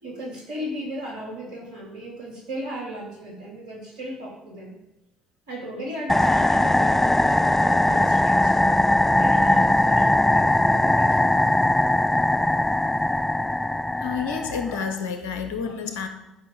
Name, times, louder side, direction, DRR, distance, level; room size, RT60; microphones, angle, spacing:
voice 1, 0.0-4.7 5.5-8.5 9.0-11.3, equal, 80° right, -4 dB, 3.3 m, -36 dB
sound 1, 6.1-14.9, left 1 dB, 10° left, 0.3 m, -20 dB
voice 2, 14.0-16.1, left 6 dB, 75° left, 7 dB, 1.1 m, -29 dB
11.5 x 5.6 x 4.9 m, 0.96 s
hypercardioid pair, 50°, 3 cm